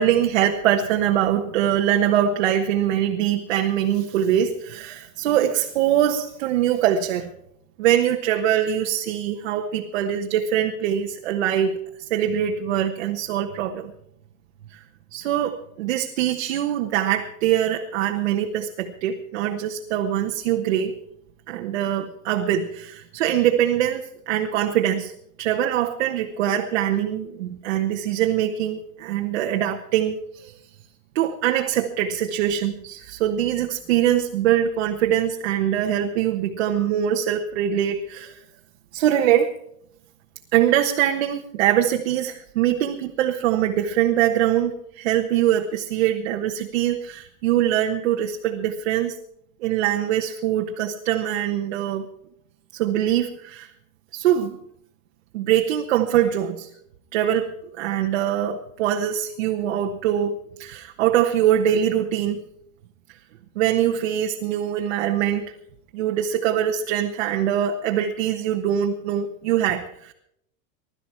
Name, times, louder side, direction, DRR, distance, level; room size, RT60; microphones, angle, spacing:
voice 1, 0.0-7.3 7.8-11.8 12.1-13.9 14.7-14.8 15.1-20.9 21.5-25.1 25.4-30.5 31.1-38.4 38.9-39.5 40.5-49.1 49.6-52.1 52.7-53.7 54.1-54.6 55.3-56.7 57.1-57.5 57.8-62.4 63.5-65.5 65.9-70.1, right 10 dB, 45° right, 2 dB, 1.3 m, -23 dB
21.5 x 12.5 x 4.4 m, 0.72 s
supercardioid pair, 170°, 46 cm